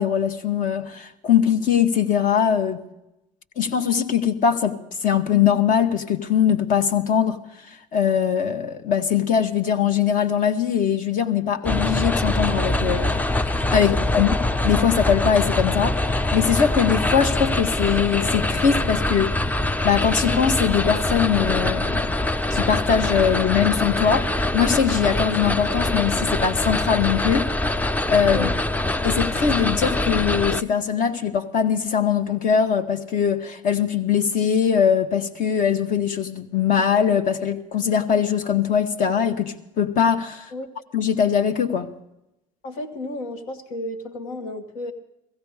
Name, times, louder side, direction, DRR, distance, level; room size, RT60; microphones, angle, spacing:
voice 1, 0.0-2.8 3.6-7.4 7.9-14.3 14.6-16.0 16.3-19.3 19.8-22.1 22.5-27.5 28.1-28.5 29.0-40.5 40.9-41.9, left 7 dB, 50° left, 1.3 m, -21 dB
sound 1, 11.6-30.6, left 1 dB, 10° left, 0.5 m, -24 dB
voice 2, 13.8-14.3 28.3-28.6 40.5-40.7 42.6-44.9, left 1 dB, 80° left, 1.6 m, -32 dB
16.5 x 15.5 x 4.9 m
hypercardioid pair, 75°, 17 cm